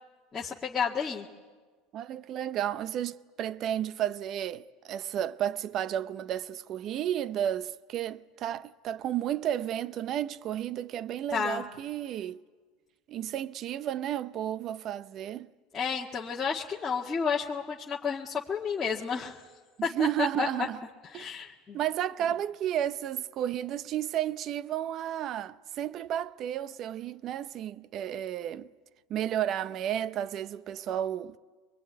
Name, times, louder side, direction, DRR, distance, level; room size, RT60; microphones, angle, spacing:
voice 1, 0.3-1.3 11.3-11.6 15.7-19.4 19.8-20.5 21.1-21.8, left 6 dB, 20° left, 1.7 m, -31 dB
voice 2, 1.9-12.4 13.1-15.5 19.8-20.8 21.1-21.3 21.7-28.7 29.1-31.4, right 11 dB, 45° right, 0.7 m, -32 dB
23.5 x 22.0 x 9.5 m
supercardioid pair, 120°, 0 cm